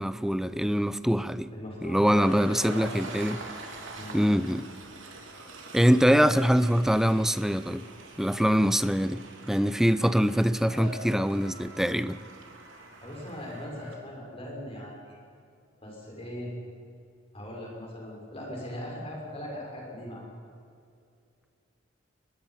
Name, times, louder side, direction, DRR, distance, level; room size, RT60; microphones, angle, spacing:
voice 1, 0.0-1.5 1.8-3.4 4.1-4.7 5.7-7.8 8.2-9.2 9.5-12.2, equal, ahead, 0.5 m, -24 dB
voice 2, 1.5-2.9 3.9-4.3 6.0-6.4 10.7-11.1 13.0-15.2 15.8-16.5 17.3-20.3, left 1 dB, 30° left, 6.1 m, -39 dB
Train, 2.0-14.0, right 3 dB, 75° right, 3.0 m, -46 dB
23.0 x 21.0 x 5.8 m
head